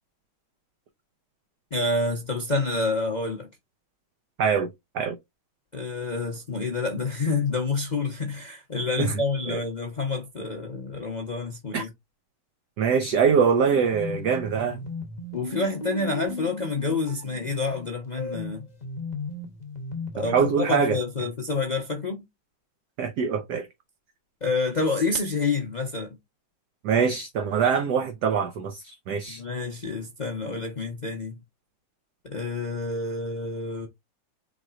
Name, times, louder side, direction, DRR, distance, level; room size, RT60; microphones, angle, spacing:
voice 1, 1.7-3.5 5.7-11.9 15.3-18.6 20.1-22.2 24.4-26.1 29.3-31.4 32.2-33.9, left 3 dB, 70° left, 0.4 m, -28 dB
voice 2, 4.4-5.2 9.0-9.1 9.5-9.6 11.7-11.9 12.8-14.8 20.2-21.0 23.0-23.7 26.8-29.4, right 6 dB, 65° right, 1.1 m, -24 dB
sound 1, 13.8-20.7, left 2 dB, 30° left, 0.8 m, -37 dB
4.7 x 4.1 x 2.4 m
omnidirectional pair, 2.3 m